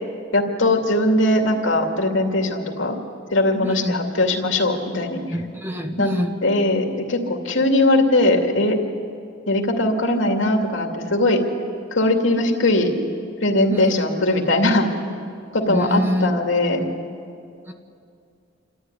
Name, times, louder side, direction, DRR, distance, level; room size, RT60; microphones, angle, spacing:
voice 1, 0.3-3.0 3.3-5.2 6.0-6.1 6.4-8.8 9.5-11.4 11.9-12.9 13.4-14.9 15.5-16.8, left 1 dB, 80° left, 2 dB, 2.5 m, -20 dB
voice 2, 3.6-4.0 5.3-6.4 13.7-14.1 15.7-16.3 16.8-16.9 17.7-17.8, equal, 10° right, 5 dB, 1.1 m, -25 dB
27.5 x 13.5 x 9.8 m, 2.5 s
head